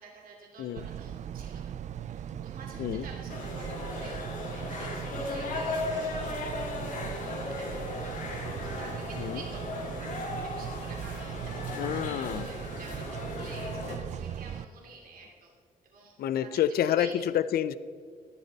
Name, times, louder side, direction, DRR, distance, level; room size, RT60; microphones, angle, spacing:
voice 1, 0.0-1.6 2.0-9.6 10.0-15.5 15.8-16.1 16.4-16.6 17.0-17.2, right 4 dB, 70° right, -2 dB, 2.8 m, -50 dB
sound 1, 0.8-14.6, right 9 dB, 50° right, 0.4 m, -39 dB
sound 2, 3.3-14.0, left 2 dB, 60° left, 2.7 m, -36 dB
voice 2, 11.8-12.5 16.2-17.1 17.3-17.8, left 10 dB, 90° left, 15 dB, 0.6 m, -28 dB
14.0 x 12.0 x 4.1 m, 2.1 s
wide cardioid pair, 145°, 15 cm